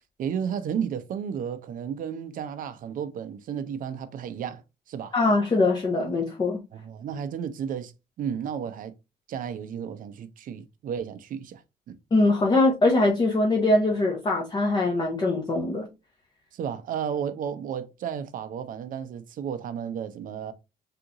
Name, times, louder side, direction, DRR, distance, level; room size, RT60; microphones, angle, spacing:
voice 1, 0.2-4.6 4.9-5.1 6.7-7.9 8.2-8.9 9.3-11.6 11.9-12.0 16.5-20.5, right 8 dB, 55° right, 0.6 m, -33 dB
voice 2, 5.1-6.6 12.1-15.9, left 2 dB, 25° left, 0.7 m, -22 dB
3.7 x 2.5 x 2.8 m
cardioid pair, 110°, 17 cm